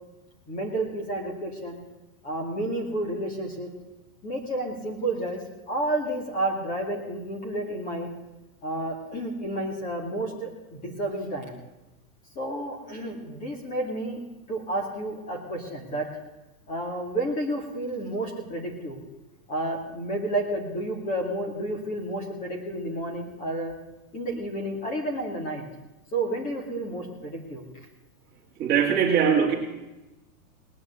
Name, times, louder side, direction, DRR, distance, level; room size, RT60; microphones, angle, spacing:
voice 1, 0.5-1.8 2.2-3.7 4.2-8.1 8.6-11.5 12.4-14.2 14.5-16.1 16.7-19.0 19.5-23.7 24.1-25.6 26.1-27.6, right 1 dB, 20° left, 2 dB, 2.4 m, -31 dB
voice 2, 28.6-29.6, right 7 dB, 20° right, -1 dB, 2.5 m, -21 dB
19.0 x 8.9 x 8.2 m, 1.0 s
supercardioid pair, 170°, 44 cm